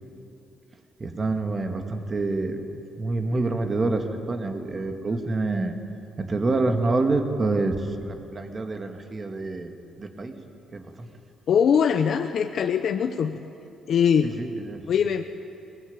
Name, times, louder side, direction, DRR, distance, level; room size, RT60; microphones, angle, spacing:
voice 1, 1.0-2.6 3.0-5.7 6.2-10.4 10.7-11.1 14.2-14.9, right 3 dB, 30° right, 5 dB, 2.3 m, -27 dB
voice 2, 11.5-13.4 13.9-14.4 14.9-15.2, left 7 dB, 65° left, 7 dB, 0.9 m, -22 dB
22.5 x 19.5 x 8.9 m, 2.7 s
cardioid pair, 90°, 0 cm